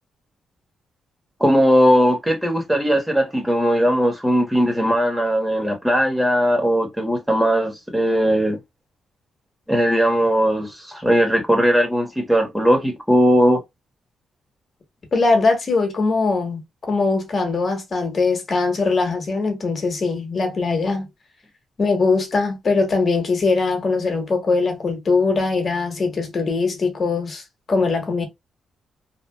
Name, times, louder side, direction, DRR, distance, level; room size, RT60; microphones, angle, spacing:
voice 1, 1.4-8.6 9.7-13.6, equal, 5° right, 1.2 m, -18 dB
voice 2, 15.1-16.6 16.9-21.1 21.8-28.2, left 3 dB, 45° left, 1.2 m, -21 dB
2.8 x 2.3 x 2.2 m
cardioid pair, 90°, 0 cm